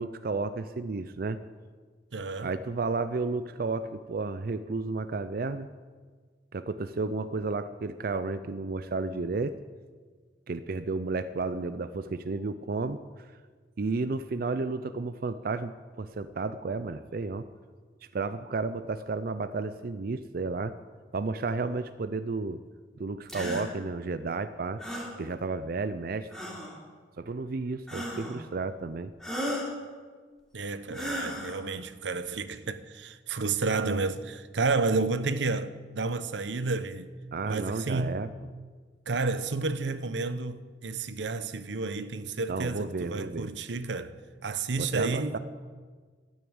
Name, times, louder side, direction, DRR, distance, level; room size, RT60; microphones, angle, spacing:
voice 1, 0.0-1.4 2.4-5.7 6.5-9.5 10.5-13.3 13.8-15.7 16.0-17.5 18.1-20.8 21.1-22.6 23.0-24.8 25.2-26.3 27.2-29.1 37.3-38.3 42.5-43.5 44.8-45.4, right 3 dB, 55° right, 0.5 m, -32 dB
voice 2, 2.1-2.5 30.5-37.1 37.5-38.2 39.1-44.2 44.4-45.4, right 3 dB, 85° right, 0.8 m, -31 dB
sound 1, 23.3-23.7 24.8-25.1 26.3-26.8 27.9-28.4 29.2-29.7 30.9-31.6, equal, ahead, 3.1 m, -34 dB
12.5 x 9.6 x 8.8 m
head